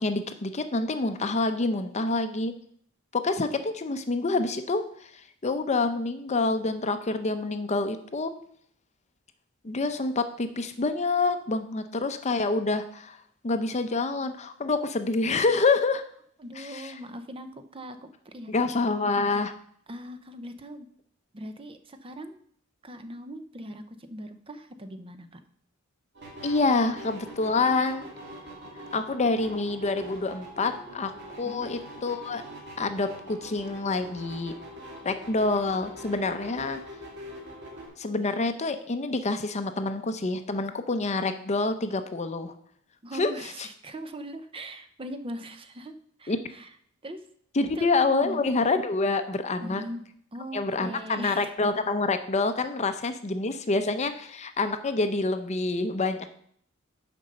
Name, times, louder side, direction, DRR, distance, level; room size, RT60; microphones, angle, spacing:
voice 1, 0.0-2.5 3.1-5.1 5.4-8.3 9.6-13.2 13.4-16.0 16.6-16.9 18.5-19.5 26.4-28.1 28.9-31.1 31.4-32.4 32.8-34.5 35.0-36.8 38.0-42.5 43.1-43.3 46.3-46.4 47.6-49.8 50.5-56.3, left 3 dB, 35° left, 9 dB, 0.6 m, -27 dB
voice 2, 16.4-18.7 19.9-20.9 21.3-22.4 22.8-25.4 31.4-31.7 43.0-45.9 46.2-46.7 47.0-47.3 47.7-47.9 48.2-48.5 49.6-50.0 50.3-51.6, equal, 25° right, 9 dB, 0.6 m, -40 dB
sound 1, 26.1-37.9, equal, 55° right, 2.1 m, -43 dB
6.9 x 5.3 x 6.6 m, 0.62 s
head